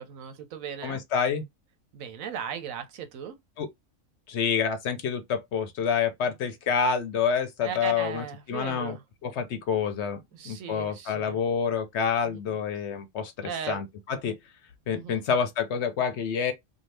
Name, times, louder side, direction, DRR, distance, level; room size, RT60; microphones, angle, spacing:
voice 1, 0.0-1.0 1.9-3.3 7.6-9.0 10.3-11.4 12.2-12.6 13.4-13.8 14.9-15.2, right 8 dB, 85° right, 1.1 m, -37 dB
voice 2, 0.8-1.4 3.6-3.7 4.3-9.0 9.2-10.2 10.5-14.4 14.9-16.5, left 6 dB, 65° left, 0.8 m, -28 dB
2.7 x 2.3 x 3.2 m
omnidirectional pair, 1.4 m